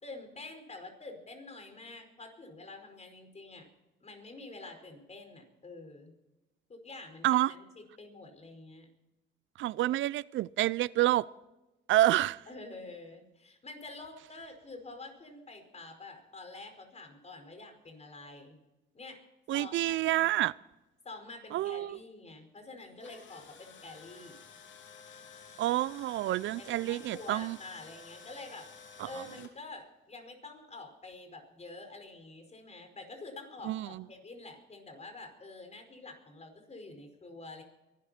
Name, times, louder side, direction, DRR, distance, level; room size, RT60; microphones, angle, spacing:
voice 1, 0.0-3.7 4.0-6.1 6.7-8.9 12.5-18.6 18.9-19.3 19.5-20.3 21.0-24.4 26.6-28.7 29.0-37.6, left 3 dB, 35° left, 4.9 m, -47 dB
voice 2, 9.6-11.3 11.9-12.4 19.5-20.5 21.5-22.0 25.6-27.6 29.0-29.1 33.7-34.0, right 15 dB, 75° right, 0.4 m, -28 dB
Tools, 22.8-29.5, left 6 dB, 70° left, 2.9 m, -52 dB
23.0 x 13.0 x 4.3 m
cardioid pair, 90°, 20 cm